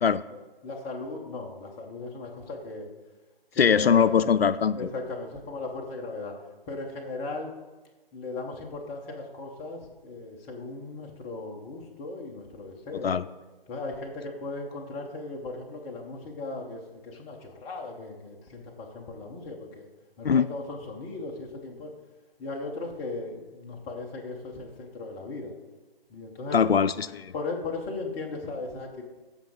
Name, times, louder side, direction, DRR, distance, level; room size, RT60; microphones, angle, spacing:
voice 1, 0.3-2.9 3.5-4.1 4.7-6.3 6.7-7.6 8.1-13.1 13.7-19.9 20.2-21.9 22.4-25.5 26.1-26.6 27.3-29.1, left 3 dB, 15° left, 0 dB, 1.0 m, -37 dB
voice 2, 3.6-4.9 13.0-13.2 20.2-20.5 26.5-27.3, left 7 dB, 90° left, 15 dB, 0.5 m, -22 dB
14.5 x 5.3 x 3.7 m, 1.2 s
figure-of-eight pair, 145°, 30 cm